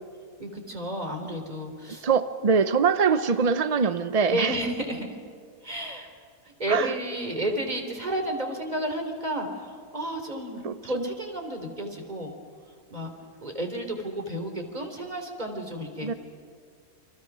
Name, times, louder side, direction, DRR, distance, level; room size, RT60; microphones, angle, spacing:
voice 1, 0.4-2.0 4.3-5.1 5.6-6.1 6.6-12.3 12.9-13.1 13.4-16.1, right 1 dB, 30° right, 3 dB, 3.5 m, -32 dB
voice 2, 2.0-4.6 6.7-6.9 10.6-11.1 16.0-16.1, right 5 dB, 45° right, 10 dB, 0.5 m, -23 dB
30.0 x 25.5 x 6.1 m, 2.1 s
omnidirectional pair, 1.5 m